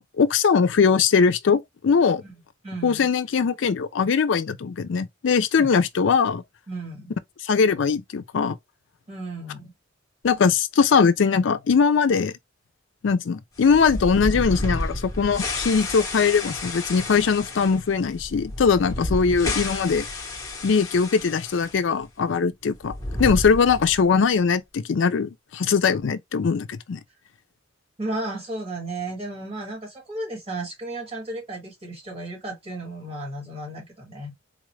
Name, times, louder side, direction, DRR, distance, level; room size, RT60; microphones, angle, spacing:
voice 1, 0.2-2.2 2.8-6.4 7.4-8.6 10.2-12.3 13.0-20.0 20.6-22.9 23.2-27.0, left 5 dB, 65° left, 0.4 m, -21 dB
voice 2, 2.2-3.1 5.6-5.7 6.7-7.1 9.1-9.7 28.0-34.3, right 2 dB, 30° right, 1.8 m, -34 dB
sound 1, 13.6-21.8 22.0-22.1 22.8-24.1, left 2 dB, 15° left, 1.0 m, -31 dB
4.0 x 2.4 x 3.1 m
head